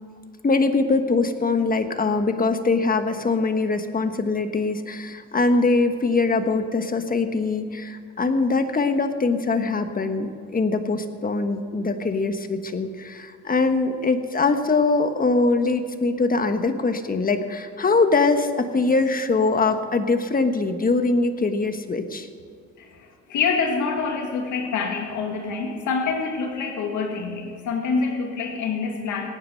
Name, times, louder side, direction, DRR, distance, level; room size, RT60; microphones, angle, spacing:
voice 1, 0.4-22.3, left 3 dB, 30° left, 8 dB, 1.3 m, -22 dB
voice 2, 22.8-29.3, left 5 dB, 80° left, 3 dB, 2.3 m, -26 dB
17.0 x 9.8 x 6.5 m, 2.1 s
cardioid pair, 90°, 30 cm